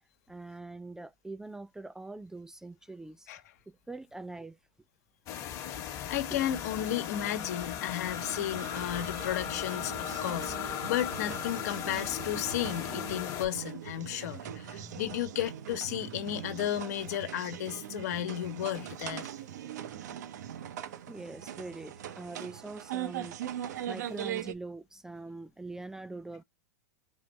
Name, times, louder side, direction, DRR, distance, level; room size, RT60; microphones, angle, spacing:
voice 1, 0.3-3.3 3.7-4.6 6.3-6.4 14.2-15.1 15.9-16.3 21.1-26.4, right 2 dB, 5° right, 0.3 m, -44 dB
sound 1, 5.3-13.5, left 10 dB, 35° left, 1.1 m, -37 dB
voice 2, 6.1-19.3, left 11 dB, 65° left, 1.1 m, -33 dB
sound 2, 8.1-24.5, right 10 dB, 75° right, 0.7 m, -41 dB
3.8 x 3.4 x 3.1 m
hypercardioid pair, 125°, 9 cm